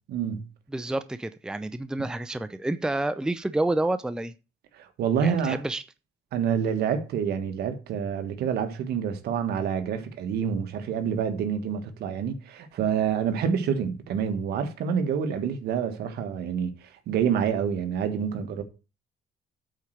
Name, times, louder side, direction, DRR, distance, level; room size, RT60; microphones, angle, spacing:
voice 1, 0.1-0.5 4.8-5.6 6.3-18.6, right 7 dB, 70° right, 1.6 m, -27 dB
voice 2, 0.7-4.3 5.2-5.8, right 2 dB, 5° right, 0.5 m, -29 dB
8.4 x 4.5 x 6.4 m
cardioid pair, 110°, 17 cm